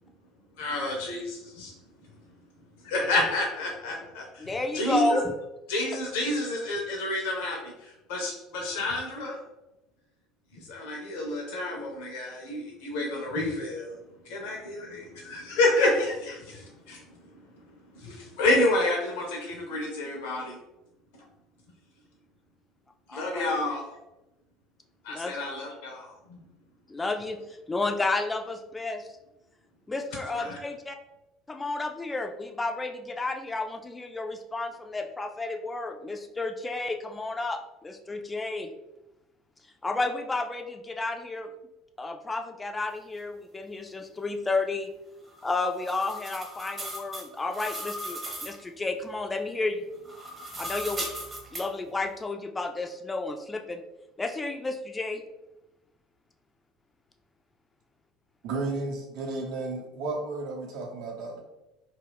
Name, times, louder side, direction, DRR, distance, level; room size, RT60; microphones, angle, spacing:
voice 1, 0.6-1.7 2.8-4.5 4.7-5.2 5.7-9.4 10.6-13.9 14.3-17.0 17.9-20.6 23.1-23.8 25.0-26.4 30.3-30.6, left 2 dB, 65° left, 0 dB, 0.5 m, -29 dB
voice 2, 4.4-5.3 23.1-23.4 25.1-25.3 26.9-29.1 29.9-31.0 31.5-38.7 39.8-41.5 42.0-44.9 45.4-49.9 50.6-51.1 51.5-53.8 54.2-55.2, left 2 dB, 20° left, 4 dB, 0.3 m, -31 dB
sound 1, 45.3-48.6 50.0-51.6, equal, 30° right, 0.8 m, -37 dB
voice 3, 58.4-61.4, right 3 dB, 60° right, -1 dB, 0.7 m, -33 dB
2.4 x 2.2 x 3.3 m, 0.97 s
figure-of-eight pair, 65°, 0 cm